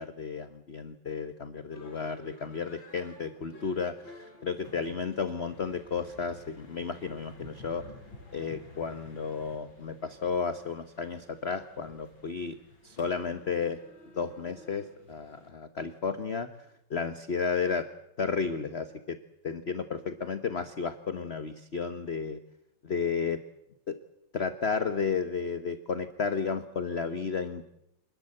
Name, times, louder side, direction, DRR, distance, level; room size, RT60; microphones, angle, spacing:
voice 1, 0.0-7.8 8.3-12.6 12.8-13.8 14.1-16.5 16.9-17.9 18.2-19.2 19.4-22.4 22.8-23.4 23.9-24.0 24.3-27.7, left 5 dB, 35° left, 10 dB, 1.2 m, -33 dB
sound 1, 1.7-15.5, left 2 dB, 70° left, 5.8 m, -52 dB
27.5 x 20.5 x 7.8 m, 0.79 s
omnidirectional pair, 2.2 m